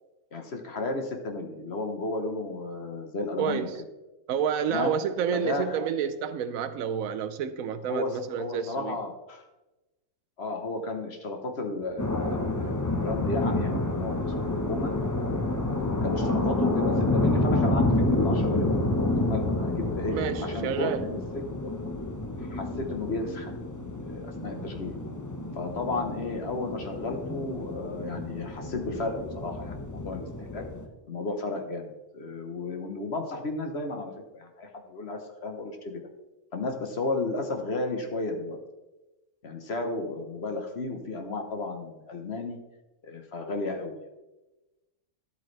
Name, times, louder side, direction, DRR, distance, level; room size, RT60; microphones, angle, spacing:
voice 1, 0.3-3.7 4.7-4.9 5.3-5.8 7.9-9.4 10.4-14.9 16.0-17.9 18.2-20.1 20.4-21.7 22.4-23.5 24.0-25.0 25.5-30.6 31.1-36.0 36.5-38.6 39.4-42.6 43.0-44.0, left 2 dB, 50° left, 4 dB, 1.2 m, -33 dB
voice 2, 3.4-3.8 4.3-9.0 20.1-21.0, right 8 dB, 70° right, 11 dB, 0.9 m, -29 dB
sound 1, 12.0-30.8, left 2 dB, 15° left, 0.7 m, -29 dB
11.5 x 8.4 x 3.3 m, 1.1 s
omnidirectional pair, 1.5 m